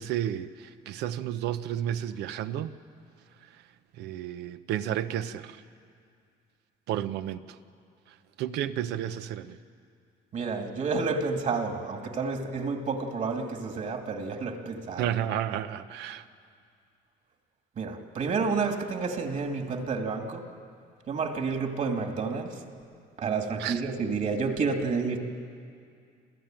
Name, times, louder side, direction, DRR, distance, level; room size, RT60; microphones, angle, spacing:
voice 1, 0.0-2.7 3.9-5.6 6.9-7.6 8.1-9.6 15.0-16.3 23.6-23.9, right 11 dB, 85° right, 0.9 m, -32 dB
voice 2, 10.3-15.1 17.8-20.5 21.1-22.6 23.2-25.2, right 4 dB, 50° right, 2.5 m, -30 dB
27.5 x 15.5 x 9.1 m
cardioid pair, 110°, 17 cm